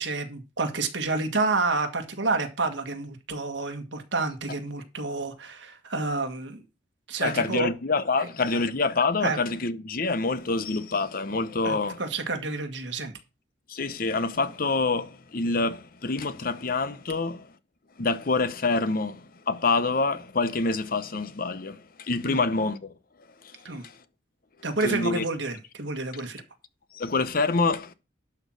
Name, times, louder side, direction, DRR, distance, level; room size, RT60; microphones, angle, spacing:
voice 1, 0.0-6.6 7.1-7.7 8.2-8.3 9.2-9.4 11.6-13.1 22.3-22.4 23.7-23.8 24.6-26.4, right 3 dB, 75° right, 1.8 m, -29 dB
voice 2, 7.2-12.0 13.7-17.5 18.0-22.9 23.8-23.9 24.8-25.2 26.9-27.9, left 3 dB, 50° left, 0.8 m, -26 dB
11.5 x 4.6 x 6.3 m
head